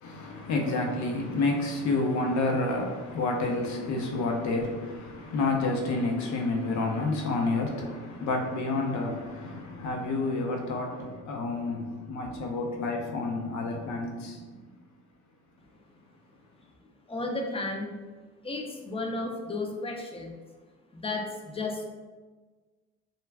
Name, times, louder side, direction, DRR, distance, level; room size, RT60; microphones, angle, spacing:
voice 1, 0.0-14.5, left 2 dB, 70° left, 1 dB, 0.6 m, -29 dB
voice 2, 17.1-17.9 18.4-20.4 20.9-21.8, left 2 dB, 20° left, 1 dB, 0.4 m, -33 dB
2.3 x 2.2 x 3.3 m, 1.3 s
cardioid pair, 90°, 30 cm